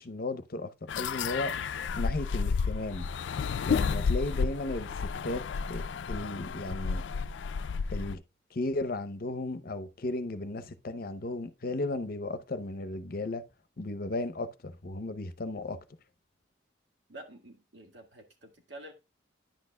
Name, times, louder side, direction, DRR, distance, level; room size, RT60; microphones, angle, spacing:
voice 1, 0.0-1.5 2.0-3.1 3.6-7.0 7.9-8.2 8.5-13.4 13.8-15.8, left 2 dB, 55° left, 0.7 m, -35 dB
sound 1, 0.9-8.2, left 5 dB, 80° left, 0.4 m, -31 dB
voice 2, 17.1-18.9, right 1 dB, 70° right, 1.8 m, -48 dB
10.5 x 6.5 x 2.2 m
head